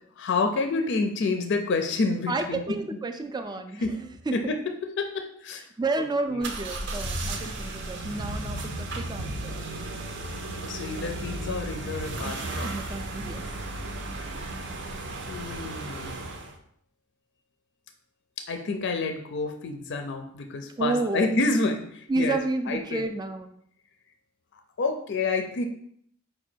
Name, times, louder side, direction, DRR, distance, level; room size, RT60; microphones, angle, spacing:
voice 1, 0.2-2.6 3.8-4.0 4.3-5.6 6.3-6.4 9.7-9.9 10.7-12.7 15.3-16.2 18.4-22.4 22.7-23.0 24.8-25.7, left 3 dB, 60° left, 5 dB, 0.4 m, -28 dB
voice 2, 2.3-4.4 5.8-9.6 12.6-13.5 20.8-21.4 22.1-23.5, right 2 dB, 20° right, 7 dB, 0.3 m, -30 dB
sound 1, 6.4-16.6, right 2 dB, 60° right, 0.6 m, -34 dB
5.0 x 2.2 x 4.4 m, 0.67 s
head